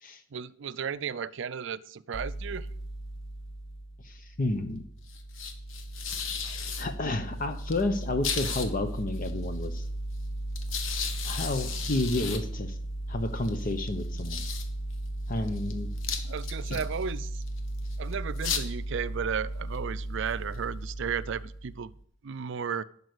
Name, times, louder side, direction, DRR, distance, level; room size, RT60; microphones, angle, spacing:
voice 1, 0.3-2.7 16.3-17.4 18.0-21.9 22.2-22.8, right 7 dB, 65° right, 16 dB, 0.5 m, -34 dB
sound 1, 2.1-22.0, left 1 dB, 90° left, 1.2 m, -35 dB
voice 2, 4.0-4.8 6.8-9.8 11.2-12.8 13.1-14.4 15.3-15.9 16.7-16.8, left 2 dB, 45° left, 8 dB, 0.9 m, -31 dB
11.0 x 5.4 x 7.9 m, 0.64 s
head